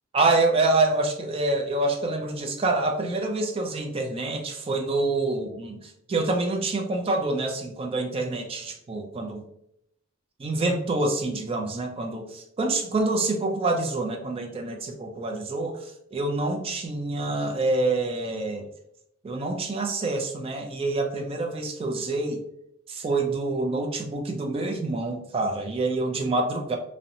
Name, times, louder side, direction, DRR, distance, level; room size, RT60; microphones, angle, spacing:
voice 1, 0.1-9.4 10.4-18.7 19.2-22.4 22.9-26.8, right 2 dB, 25° right, 3 dB, 0.3 m, -26 dB
2.7 x 2.0 x 2.6 m, 0.75 s
head